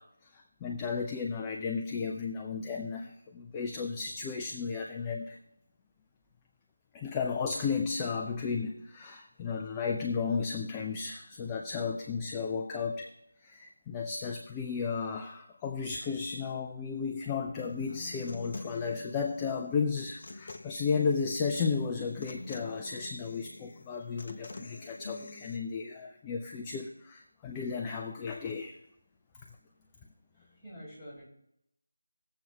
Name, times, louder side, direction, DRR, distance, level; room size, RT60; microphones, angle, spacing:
voice 1, 0.0-5.4 6.9-13.1 13.4-28.8, left 5 dB, 15° left, 2 dB, 0.4 m, -34 dB
Human voice / Acoustic guitar, 17.6-25.6, left 3 dB, 40° left, 0.7 m, -47 dB
voice 2, 30.3-31.2, equal, 5° right, -12 dB, 4.2 m, -48 dB
20.0 x 7.5 x 2.3 m, 0.78 s
figure-of-eight pair, 160°, 0 cm